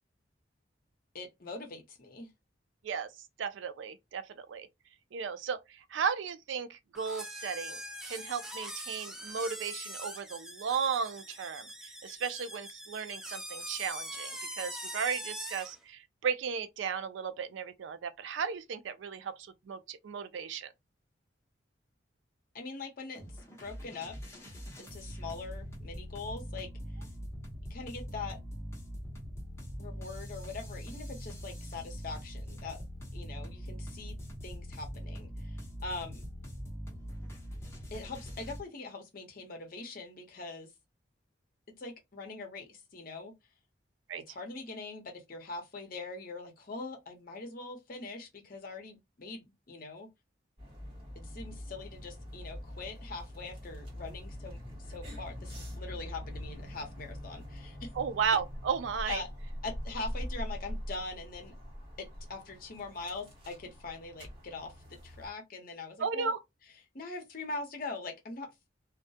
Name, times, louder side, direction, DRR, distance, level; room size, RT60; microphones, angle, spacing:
voice 1, 1.1-2.3 22.5-23.2 23.6-24.2 24.8-26.7 27.7-28.4 29.8-32.8 33.1-34.2 34.4-36.2 37.9-40.7 41.8-43.3 44.3-50.1 51.2-54.6 54.9-57.9 59.1-59.3 59.6-61.5 62.0-66.3 66.9-68.5, left 3 dB, 50° left, 0.8 m, -42 dB
voice 2, 3.4-4.7 5.1-20.7 44.1-44.2 58.0-59.2 66.0-66.4, right 6 dB, 75° right, 0.4 m, -35 dB
sound 1, 6.9-15.8, equal, 5° right, 0.3 m, -43 dB
sound 2, 23.2-38.6, equal, 15° left, 0.8 m, -42 dB
sound 3, 50.6-65.3, equal, 30° right, 1.1 m, -43 dB
2.3 x 2.1 x 2.6 m
head